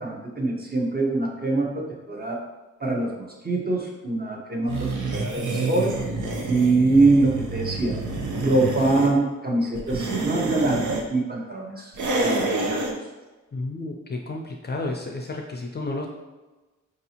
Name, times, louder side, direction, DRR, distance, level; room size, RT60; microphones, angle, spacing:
voice 1, 0.0-2.4 2.8-5.9 6.5-8.0 8.4-11.9 12.2-12.9, right 2 dB, 30° right, -1 dB, 0.6 m, -24 dB
sound 1, 4.7-9.1 9.8-11.0 11.9-12.9, right 2 dB, 80° right, 0.6 m, -28 dB
voice 2, 13.5-16.1, left 2 dB, 35° left, 1 dB, 0.4 m, -31 dB
4.8 x 2.6 x 2.8 m, 1.2 s
wide cardioid pair, 140°, 30 cm